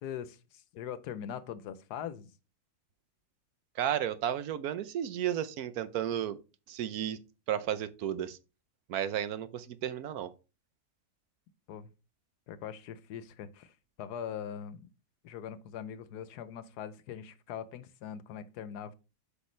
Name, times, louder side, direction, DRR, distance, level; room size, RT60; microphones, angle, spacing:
voice 1, 0.0-2.3 11.7-11.9 12.5-14.9 15.2-18.9, left 9 dB, 80° left, 1.3 m, -42 dB
voice 2, 3.7-6.4 6.7-7.2 7.5-8.4 8.9-10.3, right 10 dB, 70° right, 1.1 m, -33 dB
8.1 x 5.5 x 3.2 m
omnidirectional pair, 1.7 m